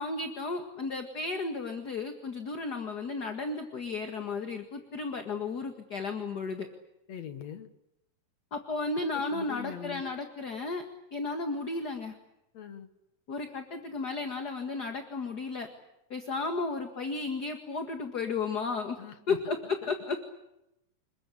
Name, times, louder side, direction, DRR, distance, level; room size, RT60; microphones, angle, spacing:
voice 1, 0.0-6.7 8.5-10.8 11.1-12.2 13.3-15.7 16.1-19.0 19.3-20.2, left 3 dB, 35° left, 6 dB, 1.8 m, -33 dB
voice 2, 7.1-7.7 9.3-10.2 12.5-12.9 19.0-19.4 19.8-19.9, left 8 dB, 55° left, 10 dB, 2.5 m, -42 dB
28.0 x 22.0 x 8.5 m, 0.87 s
omnidirectional pair, 4.0 m